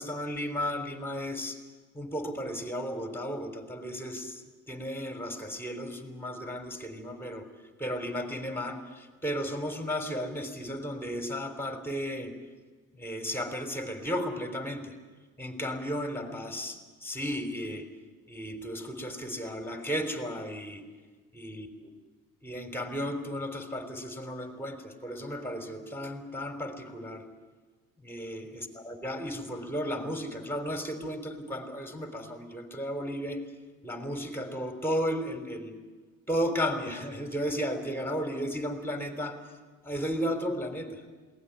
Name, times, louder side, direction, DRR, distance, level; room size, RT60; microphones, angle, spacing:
voice 1, 0.0-1.6 1.9-7.5 7.8-12.3 12.9-14.9 15.4-17.9 18.3-20.8 21.3-21.9 22.4-27.2 28.0-33.4 33.8-35.8 36.3-39.4 39.8-41.0, equal, 5° left, 5 dB, 3.6 m, -34 dB
22.0 x 18.0 x 9.5 m, 1.4 s
cardioid pair, 90°, 30 cm